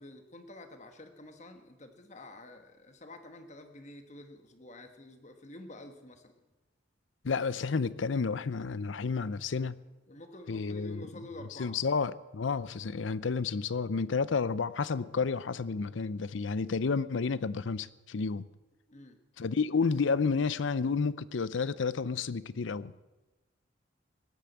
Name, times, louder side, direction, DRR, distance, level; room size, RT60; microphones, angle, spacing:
voice 1, 0.0-6.4 10.1-11.8 18.9-19.2, left 1 dB, 35° left, 1.4 m, -49 dB
voice 2, 7.2-9.8 10.5-11.1 11.6-18.5 19.4-22.9, left 5 dB, 80° left, 0.6 m, -31 dB
18.5 x 8.6 x 8.0 m
head